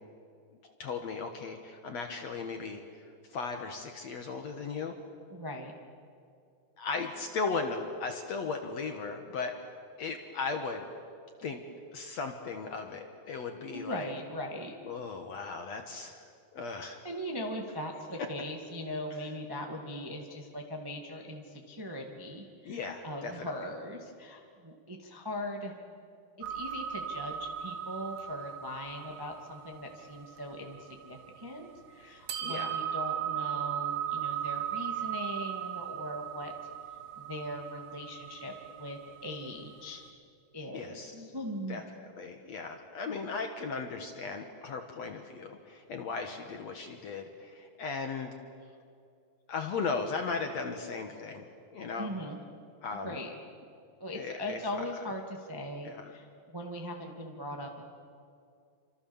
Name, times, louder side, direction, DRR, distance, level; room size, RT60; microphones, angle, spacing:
voice 1, 0.8-3.0 3.3-5.0 6.8-9.6 10.0-10.9 11.4-11.6 11.9-14.1 14.9-16.2 16.5-17.0 22.7-23.5 32.4-32.8 40.7-41.1 41.7-48.3 49.5-51.5 51.7-52.1 52.8-53.2 54.2-54.9 55.8-56.1, left 4 dB, 60° left, 5 dB, 2.0 m, -37 dB
voice 2, 5.3-5.7 13.7-14.7 16.7-25.7 26.4-36.5 37.1-40.0 40.5-41.8 52.0-52.4 52.9-53.3 54.0-57.8, left 1 dB, 15° right, 1 dB, 0.8 m, -40 dB
sound 1, 26.4-31.6 32.3-39.8, right 10 dB, 80° right, 3.6 m, -37 dB
28.0 x 26.0 x 7.2 m, 2.4 s
omnidirectional pair, 4.5 m